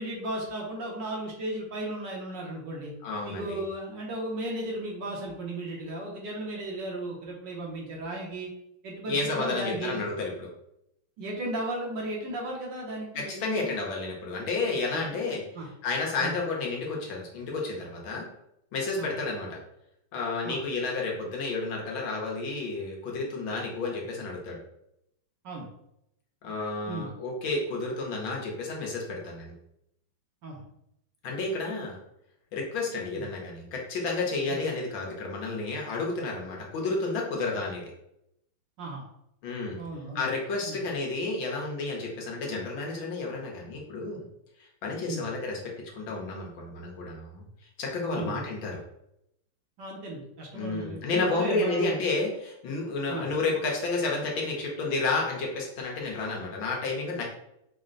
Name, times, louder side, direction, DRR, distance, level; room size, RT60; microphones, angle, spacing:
voice 1, 0.0-2.9 3.2-8.5 8.8-10.0 11.2-13.7 14.9-15.1 15.5-15.7 16.2-16.3 19.0-19.1 20.4-20.6 25.4-25.7 26.9-27.1 30.4-30.6 33.2-33.3 34.5-34.6 38.8-39.0 39.8-40.3 40.7-40.8 45.1-45.2 48.1-48.4 49.8-51.9 53.1-53.3, right 1 dB, 65° right, -2 dB, 1.4 m, -35 dB
voice 2, 3.0-3.6 9.1-10.5 13.1-15.4 15.8-18.2 18.7-19.6 20.1-24.6 26.4-29.5 31.2-32.0 32.5-37.8 39.4-39.8 40.1-44.2 44.6-47.4 47.8-48.8 50.5-57.2, left 3 dB, 70° left, -1 dB, 1.6 m, -31 dB
5.2 x 2.2 x 3.7 m, 0.79 s
omnidirectional pair, 2.4 m